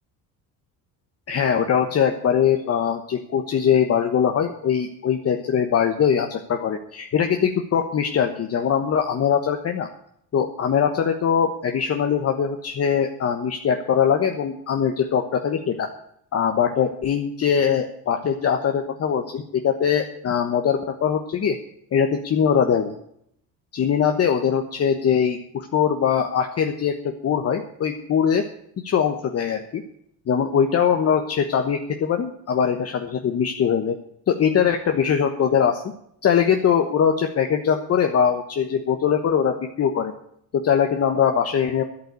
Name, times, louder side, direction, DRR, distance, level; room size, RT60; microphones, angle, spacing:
voice 1, 1.3-9.9 10.3-15.9 16.3-21.6 21.9-22.9 23.7-28.5 28.8-29.8 30.3-34.0 34.3-35.8 36.2-40.1 40.5-41.8, left 7 dB, 40° left, 5 dB, 1.2 m, -21 dB
11.5 x 8.5 x 8.1 m, 0.70 s
cardioid pair, 130°, 37 cm